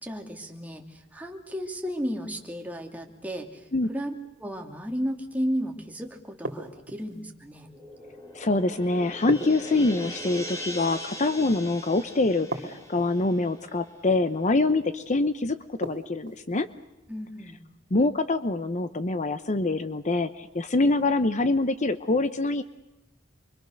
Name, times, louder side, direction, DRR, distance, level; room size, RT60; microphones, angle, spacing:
voice 1, 0.0-4.1 4.4-7.7 17.1-17.6, equal, 10° right, 2 dB, 2.8 m, -34 dB
sound 1, 6.4-7.2 9.3-10.3 12.5-13.3 15.8-16.5, right 2 dB, 60° right, 3.0 m, -35 dB
sound 2, 7.6-14.2, equal, 15° left, 2.4 m, -41 dB
voice 2, 8.3-16.7 17.9-22.6, left 2 dB, 40° left, 11 dB, 0.8 m, -25 dB
28.5 x 24.0 x 6.5 m, 0.96 s
head